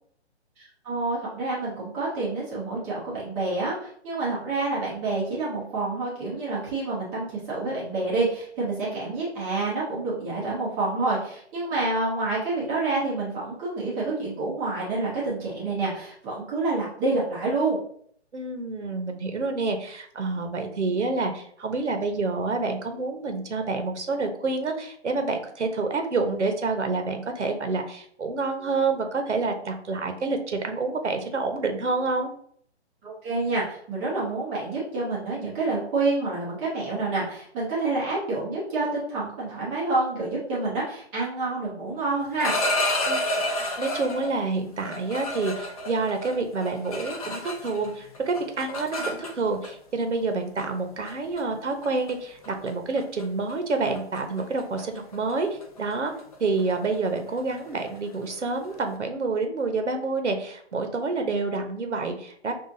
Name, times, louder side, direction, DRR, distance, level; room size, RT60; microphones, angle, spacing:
voice 1, 0.6-17.8 33.0-42.5, right 3 dB, 5° right, -7 dB, 0.5 m, -28 dB
voice 2, 18.3-32.3 43.1-43.2 43.6-55.5 55.8-56.1 56.4-62.5, right 3 dB, 90° right, 5 dB, 0.9 m, -28 dB
sound 1, 42.2-44.3 44.8-47.9 48.1-49.7 50.6-50.7 51.1-51.4 51.8-52.1 52.4-52.7 53.0-53.2 53.5-58.9, left 1 dB, 35° left, 0.7 m, -30 dB
5.6 x 2.5 x 2.6 m, 0.62 s
hypercardioid pair, 150°, 34 cm